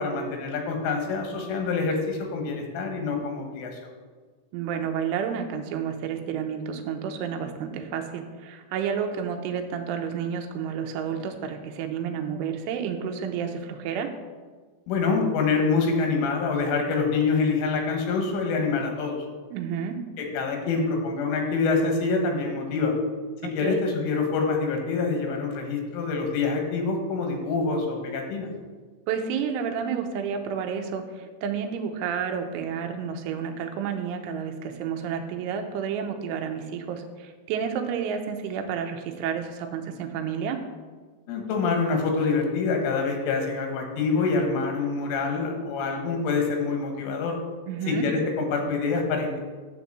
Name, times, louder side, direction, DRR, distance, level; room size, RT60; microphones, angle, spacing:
voice 1, 0.0-3.9 14.9-19.2 20.2-22.9 23.4-28.5 41.3-47.4 47.9-49.4, left 4 dB, 80° left, 3 dB, 3.9 m, -26 dB
voice 2, 4.5-14.1 19.5-20.0 23.4-23.8 29.1-40.6 47.7-48.1, right 7 dB, 80° right, 5 dB, 3.2 m, -30 dB
11.0 x 4.2 x 7.5 m, 1.4 s
omnidirectional pair, 5.6 m